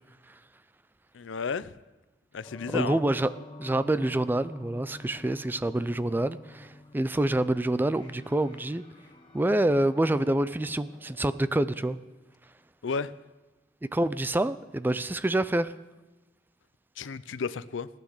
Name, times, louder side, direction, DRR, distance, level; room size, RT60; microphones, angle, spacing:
voice 1, 1.1-1.7 2.3-3.0 12.8-13.1 17.0-17.9, left 5 dB, 90° left, 16 dB, 0.5 m, -32 dB
sound 1, 2.4-11.5, left 2 dB, 30° left, 1.9 m, -50 dB
voice 2, 2.7-3.3 3.6-8.8 9.3-12.0 13.9-15.7, right 1 dB, 10° right, 14 dB, 0.4 m, -27 dB
16.0 x 9.4 x 6.5 m, 1.1 s
head